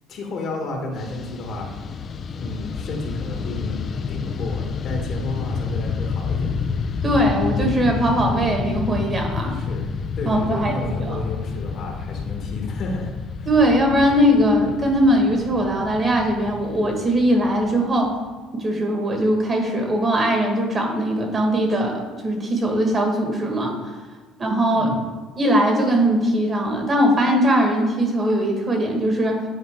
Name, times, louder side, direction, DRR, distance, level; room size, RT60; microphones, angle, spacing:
voice 1, 0.1-2.1 2.3-6.6 9.5-9.9 10.1-13.1 13.4-13.5 24.8-25.0, left 2 dB, 60° left, 1 dB, 1.5 m, -31 dB
Fixed-wing aircraft airplane, 0.9-18.4, left 5 dB, 40° left, 0.5 m, -29 dB
voice 2, 7.0-9.5 10.3-10.7 11.0-11.2 13.5-18.2 18.5-23.7 24.4-24.9 25.4-29.4, equal, 35° right, 2 dB, 1.7 m, -20 dB
9.7 x 4.0 x 3.7 m, 1.3 s
supercardioid pair, 80°, 0 cm